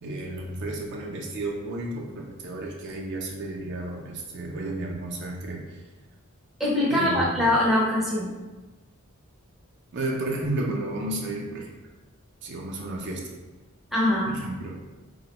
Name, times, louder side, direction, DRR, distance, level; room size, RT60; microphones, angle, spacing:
voice 1, 0.0-5.8 6.9-7.5 9.9-11.7 12.4-13.2 14.2-14.8, right 2 dB, 55° right, 0 dB, 0.4 m, -32 dB
voice 2, 6.6-8.3 13.9-14.3, left 1 dB, ahead, -6 dB, 0.5 m, -23 dB
3.4 x 2.0 x 2.9 m, 1.2 s
head